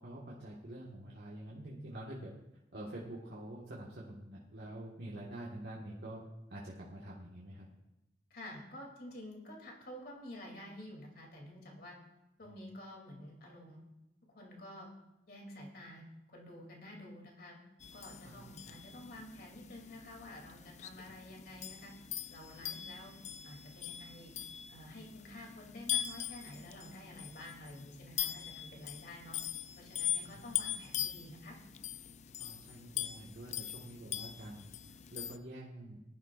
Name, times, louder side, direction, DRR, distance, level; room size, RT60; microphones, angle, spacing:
voice 1, 0.0-2.3 2.7-6.2 6.5-7.7 12.4-12.5 18.2-18.8 21.1-21.2 30.2-30.4 32.4-36.0, right 1 dB, 65° right, -6 dB, 1.6 m, -47 dB
voice 2, 8.3-12.0 12.4-13.8 14.3-14.9 15.3-17.6 17.9-21.9 22.3-23.1 23.4-24.3 24.7-29.4 29.8-31.6, left 1 dB, 60° left, 0 dB, 2.9 m, -50 dB
sound 1, 17.8-35.4, left 10 dB, 40° left, 0.4 m, -42 dB
19.5 x 11.5 x 2.5 m, 0.94 s
head